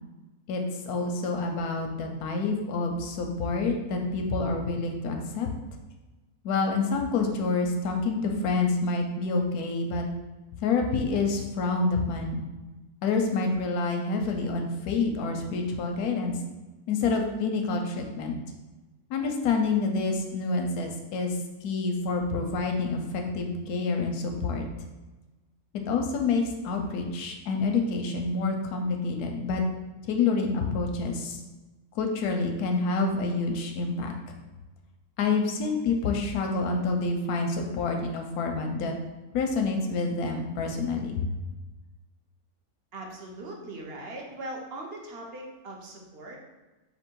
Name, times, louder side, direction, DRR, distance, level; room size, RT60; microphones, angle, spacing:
voice 1, 0.5-5.5 6.4-10.0 10.6-12.4 13.0-16.3 16.9-18.4 19.1-24.7 25.7-29.6 30.0-31.4 31.9-34.2 35.2-38.9 39.3-41.3, left 4 dB, 90° left, 3 dB, 1.1 m, -28 dB
voice 2, 42.9-46.4, right 1 dB, 50° right, 0 dB, 0.8 m, -40 dB
4.3 x 2.6 x 4.5 m, 1.1 s
omnidirectional pair, 1.6 m